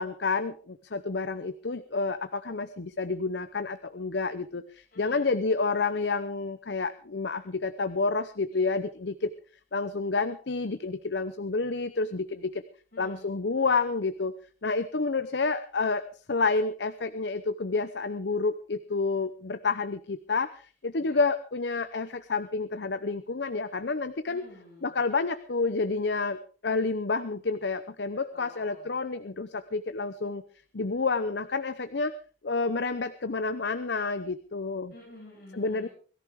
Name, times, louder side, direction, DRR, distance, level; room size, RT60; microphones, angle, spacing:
voice 1, 0.0-9.3 9.7-12.6 13.0-14.3 14.6-24.4 24.8-30.4 30.7-32.1 32.4-34.9 35.5-35.9, left 4 dB, 70° left, 12 dB, 0.8 m, -29 dB
voice 2, 4.9-5.4 8.5-8.6 12.9-13.4 20.9-21.2 24.3-25.0 28.1-29.0 34.9-35.9, left 1 dB, 55° left, -5 dB, 7.6 m, -50 dB
22.0 x 14.0 x 3.6 m, 0.40 s
head